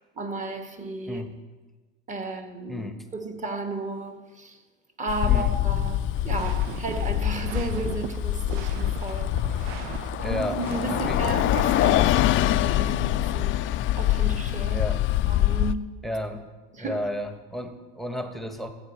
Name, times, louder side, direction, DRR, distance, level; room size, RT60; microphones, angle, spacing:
voice 1, 0.1-1.2 2.1-4.6 5.0-9.3 10.2-13.6 14.0-14.8 15.3-15.9 16.7-17.1, right 3 dB, 25° right, 1.5 m, -33 dB
voice 2, 2.7-3.0 5.3-5.6 10.2-10.5 10.9-11.2 14.7-15.0 16.0-16.5 16.8-18.7, equal, ahead, 1.1 m, -32 dB
Bus, 5.1-15.7, left 15 dB, 40° left, 0.4 m, -25 dB
sound 1, 5.5-16.0, right 2 dB, 40° right, 2.8 m, -41 dB
sound 2, 6.2-11.9, right 11 dB, 70° right, 0.6 m, -40 dB
14.0 x 7.9 x 4.3 m
supercardioid pair, 90°, 30 cm